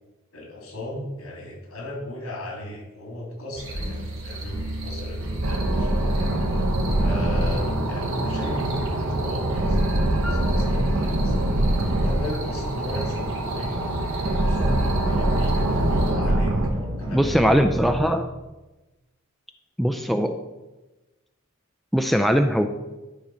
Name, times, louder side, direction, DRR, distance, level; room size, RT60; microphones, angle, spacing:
voice 1, 0.3-6.3 7.0-8.7 9.0-11.4 12.0-17.6, left 1 dB, 80° left, -1 dB, 3.1 m, -37 dB
sound 1, 3.5-16.1, right 1 dB, 70° right, 2.9 m, -36 dB
sound 2, 5.2-5.4 6.0-6.3 6.9-8.9 9.4-9.7 10.3-12.3 12.9-13.1 13.7-14.0 14.6-14.8 15.3-18.1, right 1 dB, 20° right, 2.5 m, -32 dB
sound 3, 5.4-16.7, right 1 dB, 85° right, 1.1 m, -24 dB
voice 2, 17.1-18.3 19.8-20.4 21.9-22.7, equal, ahead, 6 dB, 0.4 m, -20 dB
11.5 x 4.0 x 6.3 m, 1.1 s
head